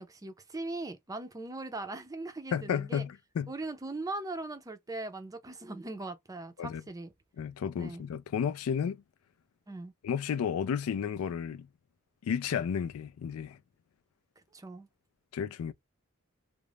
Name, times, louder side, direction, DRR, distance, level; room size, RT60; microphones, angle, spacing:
voice 1, 0.0-3.0 3.5-7.1 7.8-8.1 9.7-9.9 14.5-14.9, right 2 dB, 15° right, 0.4 m, -40 dB
voice 2, 2.5-3.5 6.6-6.8 7.4-9.0 10.0-11.7 12.2-13.6 15.3-15.7, left 7 dB, 80° left, 0.3 m, -32 dB
2.4 x 2.0 x 3.1 m
head